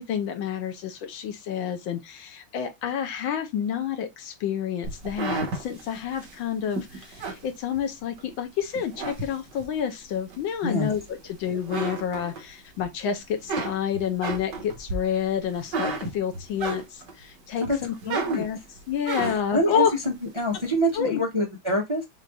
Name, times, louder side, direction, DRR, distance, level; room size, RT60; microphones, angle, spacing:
voice 1, 0.0-18.6 18.9-19.9 20.9-21.2, left 8 dB, 80° left, 1.6 m, -29 dB
sound 1, 4.8-8.3 8.7-9.8 10.3-11.3 11.6-12.8 13.2-17.2 17.6-19.6, right 3 dB, 60° right, 1.9 m, -33 dB
voice 2, 18.0-18.4 19.5-19.8 20.4-22.0, equal, 20° right, 0.8 m, -25 dB
6.5 x 2.8 x 2.4 m
omnidirectional pair, 2.2 m